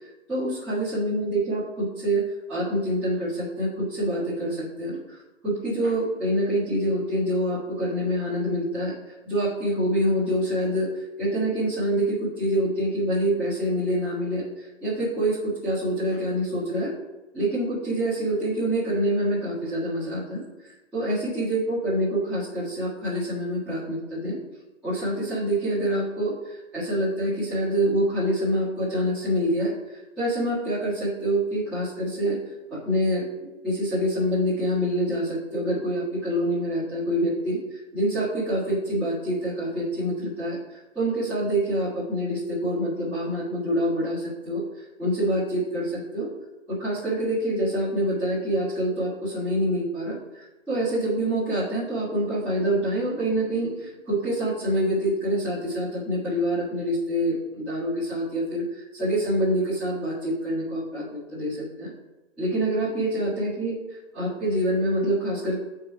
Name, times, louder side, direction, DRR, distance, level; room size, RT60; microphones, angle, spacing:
voice 1, 0.3-2.2 2.5-5.2 5.4-8.9 9.2-10.9 11.2-16.9 17.3-24.4 24.8-32.4 32.7-33.2 33.6-46.3 46.7-61.9 62.4-63.8 64.1-65.6, right 1 dB, 5° right, -14 dB, 1.6 m, -26 dB
8.1 x 4.8 x 5.7 m, 1.1 s
hypercardioid pair, 160°, 39 cm